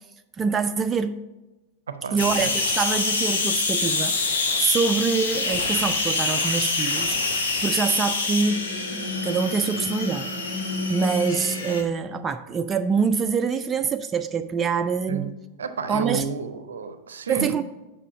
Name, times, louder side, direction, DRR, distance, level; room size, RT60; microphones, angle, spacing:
voice 1, 0.4-1.2 2.1-8.6 8.9-10.3 10.9-15.3 15.9-16.3 17.3-17.6, right 5 dB, 20° right, 0.3 m, -25 dB
voice 2, 1.9-2.2 15.1-15.3 15.6-17.5, right 6 dB, 70° right, 0.6 m, -31 dB
sound 1, 2.2-11.8, left 3 dB, 65° left, 1.1 m, -26 dB
7.3 x 5.0 x 4.7 m
figure-of-eight pair, 90°, 0 cm